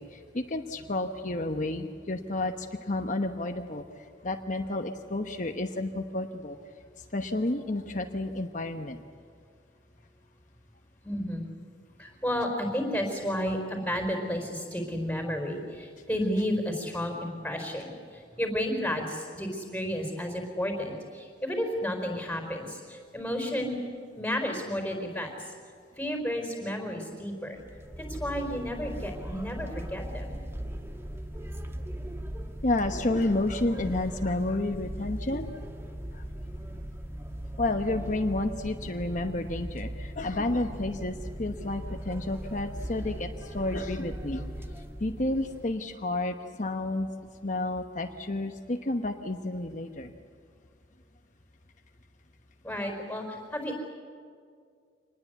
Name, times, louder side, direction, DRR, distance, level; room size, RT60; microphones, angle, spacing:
voice 1, 0.0-3.8 4.2-6.6 7.1-9.0 32.6-35.5 36.1-36.2 37.6-44.4 45.0-47.1 47.4-50.1, left 2 dB, 45° left, 5 dB, 1.1 m, -31 dB
voice 2, 11.0-11.5 12.0-23.8 24.2-25.5 26.0-27.6 28.0-30.4 52.6-53.8, equal, 5° left, 3 dB, 4.6 m, -32 dB
sound 1, 27.6-45.8, equal, 15° right, 1.2 m, -39 dB
26.0 x 20.0 x 8.3 m, 2.2 s
head